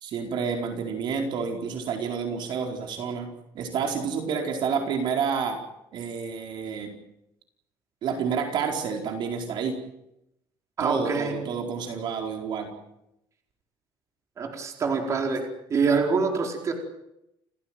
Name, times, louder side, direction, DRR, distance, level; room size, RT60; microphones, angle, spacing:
voice 1, 0.0-3.3 3.5-5.6 5.9-6.9 8.0-9.8 10.8-12.7, right 6 dB, 60° right, 4 dB, 4.6 m, -29 dB
voice 2, 10.8-11.3 14.4-15.4 15.7-16.7, right 5 dB, 35° right, 3 dB, 4.8 m, -25 dB
30.0 x 16.0 x 9.2 m, 0.83 s
cardioid pair, 155°, 9 cm